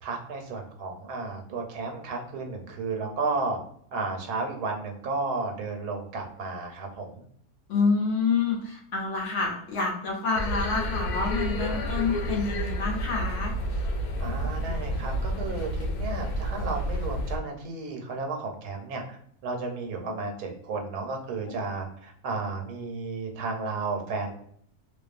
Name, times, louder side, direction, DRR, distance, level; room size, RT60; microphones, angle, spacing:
voice 1, 0.0-3.6 3.9-7.2 14.2-19.2 19.4-24.3, right 3 dB, 85° right, 2 dB, 1.2 m, -33 dB
voice 2, 7.7-13.5, left 4 dB, 65° left, -2 dB, 0.8 m, -27 dB
sound 1, 10.4-17.4, equal, 85° left, 1.1 m, -30 dB
2.5 x 2.3 x 2.4 m, 0.65 s
omnidirectional pair, 1.6 m